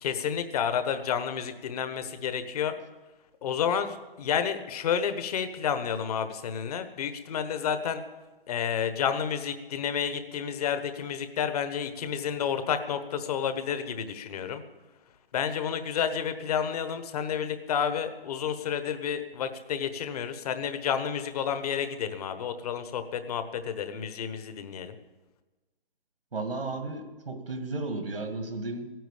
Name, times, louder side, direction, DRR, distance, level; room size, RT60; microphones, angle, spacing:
voice 1, 0.0-2.7 3.4-8.0 8.5-14.6 15.3-24.9, left 8 dB, 40° left, 9 dB, 1.3 m, -30 dB
voice 2, 26.3-28.9, right 2 dB, 85° right, 6 dB, 2.1 m, -34 dB
16.5 x 9.2 x 7.2 m, 1.2 s
hypercardioid pair, 145°, 29 cm